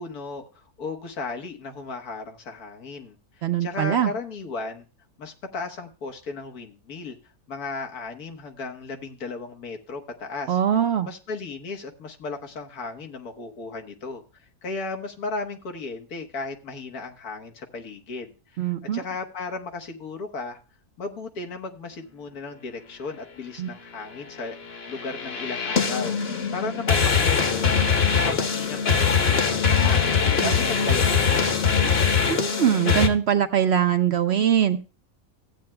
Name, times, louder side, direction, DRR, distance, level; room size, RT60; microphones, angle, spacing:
voice 1, 0.0-4.9 5.2-7.2 7.5-10.6 11.0-14.2 14.6-20.6 21.0-24.6 24.9-32.0, left 3 dB, 90° left, 3 dB, 1.8 m, -35 dB
voice 2, 3.4-4.1 10.5-11.1 18.6-19.0 23.6-23.7 30.4-30.5 32.3-34.8, right 9 dB, 60° right, 9 dB, 0.7 m, -22 dB
sound 1, 24.7-33.1, left 6 dB, 45° left, 1.2 m, -22 dB
15.5 x 8.7 x 2.3 m, 0.32 s
omnidirectional pair, 1.5 m